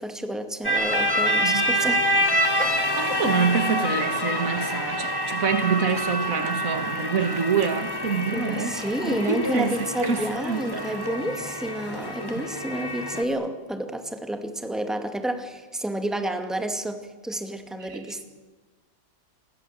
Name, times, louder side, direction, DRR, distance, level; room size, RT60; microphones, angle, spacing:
voice 1, 0.0-2.1 2.6-3.0 8.3-18.2, right 1 dB, ahead, 2.2 m, -30 dB
sound 1, 0.6-13.2, equal, 15° left, 2.8 m, -27 dB
voice 2, 2.8-8.7 9.0-9.8 10.0-10.9 12.3-12.4 17.9-18.0, right 5 dB, 70° right, 2.2 m, -26 dB
28.5 x 22.5 x 7.7 m
omnidirectional pair, 1.5 m